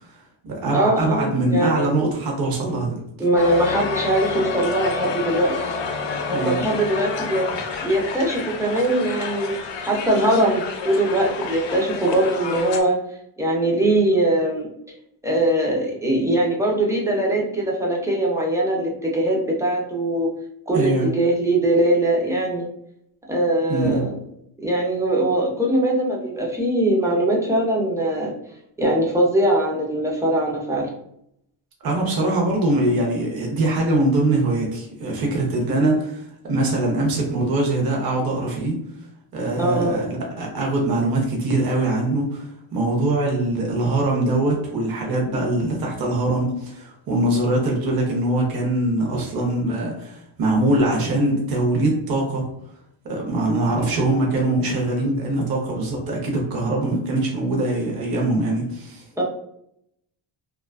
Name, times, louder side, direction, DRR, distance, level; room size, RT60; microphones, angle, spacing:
voice 1, 0.1-2.9 6.3-6.7 20.7-21.1 23.7-24.0 31.8-38.7 39.3-52.4 53.0-59.0, right 2 dB, 45° right, -1 dB, 0.7 m, -22 dB
voice 2, 0.7-1.9 3.2-7.4 7.8-9.5 9.8-12.9 13.4-14.7 15.2-20.3 20.7-22.6 23.3-24.2 24.6-28.3 28.8-30.9 39.6-40.0 59.2-59.3, right 1 dB, 5° right, -3 dB, 0.3 m, -21 dB
Crowd, 3.4-12.8, left 4 dB, 60° left, 0.5 m, -29 dB
2.5 x 2.3 x 2.3 m, 0.75 s
wide cardioid pair, 150°, 49 cm